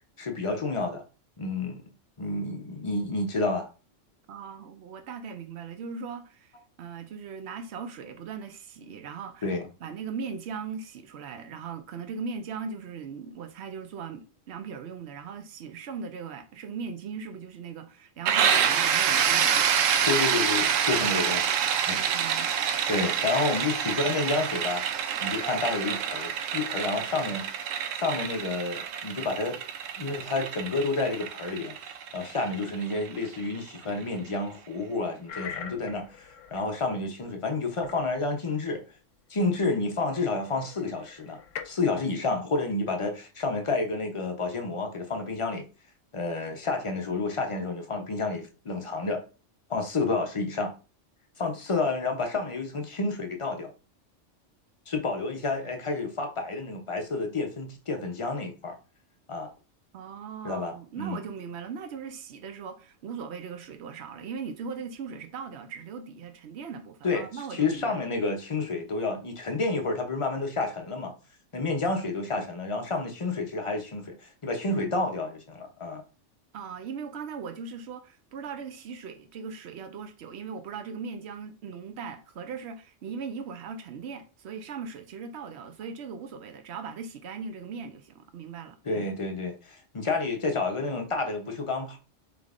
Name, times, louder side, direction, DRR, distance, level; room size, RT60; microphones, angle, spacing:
voice 1, 0.2-1.0 1.4-1.8 2.2-3.7 9.4-9.7 20.1-21.5 21.9-22.0 22.3-22.6 22.9-24.8 25.2-27.5 27.9-29.6 30.0-31.7 32.1-38.8 39.3-41.4 41.6-45.6 46.1-49.2 49.7-50.7 51.4-53.7 54.9-58.8 59.3-59.5 60.4-61.2 67.0-71.1 71.5-76.0 88.8-92.0, left 3 dB, 35° left, 0.5 m, -30 dB
voice 2, 4.3-9.5 9.8-19.6 21.9-22.6 59.9-68.1 76.5-89.1, right 6 dB, 65° right, 0.9 m, -39 dB
sound 1, 18.3-33.8, right 8 dB, 85° right, 1.0 m, -27 dB
sound 2, 35.3-36.7 37.8-38.1 39.6-39.7 40.3-42.0, left 7 dB, 80° left, 1.0 m, -42 dB
5.1 x 3.4 x 2.4 m
omnidirectional pair, 1.3 m